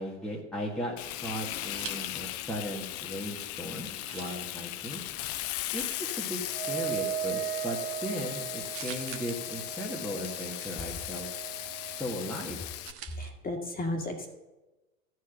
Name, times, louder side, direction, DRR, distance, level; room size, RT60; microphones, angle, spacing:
voice 1, 0.0-5.0 5.7-6.4 6.7-11.3 11.9-12.6, equal, ahead, -3 dB, 1.6 m, -37 dB
Frying (food), 1.0-12.9, left 14 dB, 40° left, 0.6 m, -37 dB
sound 1, 1.1-2.6 2.9-13.3, right 8 dB, 35° right, 1.2 m, -50 dB
Wind instrument woodwind instrument, 6.5-12.2, right 12 dB, 75° right, 1.0 m, -38 dB
voice 2, 13.1-14.3, left 1 dB, 25° left, 2 dB, 2.0 m, -34 dB
13.0 x 4.8 x 7.8 m, 1.1 s
hypercardioid pair, 85°, 37 cm